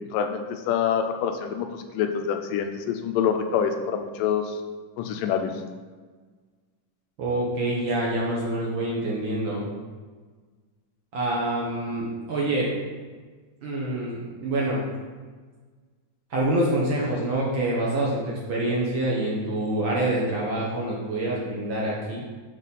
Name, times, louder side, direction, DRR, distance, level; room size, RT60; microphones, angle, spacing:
voice 1, 0.1-4.6 5.0-5.5, left 7 dB, 85° left, 6 dB, 2.3 m, -26 dB
voice 2, 7.2-9.6 11.1-12.7 13.6-14.8 16.3-22.2, right 1 dB, 65° right, -5 dB, 1.2 m, -26 dB
7.1 x 4.1 x 5.3 m, 1.4 s
omnidirectional pair, 3.8 m